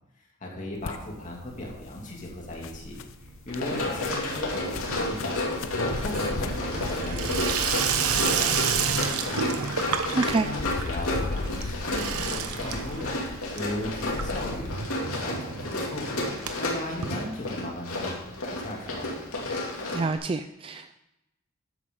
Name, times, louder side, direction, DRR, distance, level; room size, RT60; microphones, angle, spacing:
voice 1, 0.2-3.0 3.5-5.4 5.8-7.7 8.1-9.4 10.1-13.1 13.5-14.7 15.1-16.2 16.6-19.1, left 1 dB, 35° left, -2 dB, 2.7 m, -37 dB
Water tap faucet / Sink (filling or washing), 0.7-1.5 1.8-2.3 2.6-17.9 18.2-18.3 18.5-18.6 18.8-18.9 20.0-20.1, right 6 dB, 90° right, 1.0 m, -32 dB
sound 1, 0.8-14.8, left 3 dB, 65° left, 0.7 m, -38 dB
Run, 3.5-20.2, left 2 dB, 85° left, 2.6 m, -32 dB
voice 2, 10.2-10.5 19.9-21.0, right 3 dB, 25° right, 9 dB, 0.3 m, -27 dB
12.5 x 9.2 x 3.8 m, 0.91 s
head